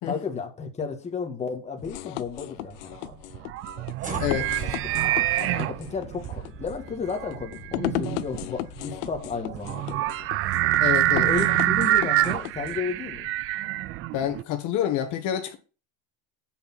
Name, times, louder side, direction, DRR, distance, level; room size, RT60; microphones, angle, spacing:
voice 1, 0.0-3.2 5.4-10.3 11.1-13.3, left 5 dB, 20° left, 1.6 m, -33 dB
sound 1, 1.8-12.8, left 15 dB, 80° left, 0.7 m, -36 dB
sound 2, 3.0-14.4, right 15 dB, 40° right, 0.4 m, -26 dB
sound 3, 4.0-10.3, right 3 dB, 20° right, 2.1 m, -41 dB
voice 2, 4.2-4.6 10.8-11.3 14.1-15.6, left 10 dB, 55° left, 1.3 m, -28 dB
6.9 x 6.0 x 5.8 m
supercardioid pair, 135°, 36 cm